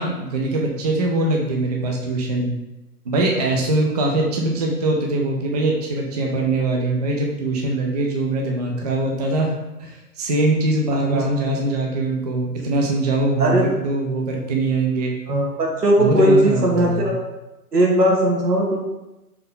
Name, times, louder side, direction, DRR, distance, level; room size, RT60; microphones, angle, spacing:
voice 1, 0.0-2.5 3.1-9.5 9.8-15.2 16.0-17.1, right 2 dB, 30° right, 0 dB, 0.3 m, -22 dB
voice 2, 15.3-17.2 17.7-18.8, right 1 dB, 85° right, -2 dB, 1.3 m, -18 dB
4.4 x 2.6 x 3.6 m, 0.98 s
figure-of-eight pair, 125°, 47 cm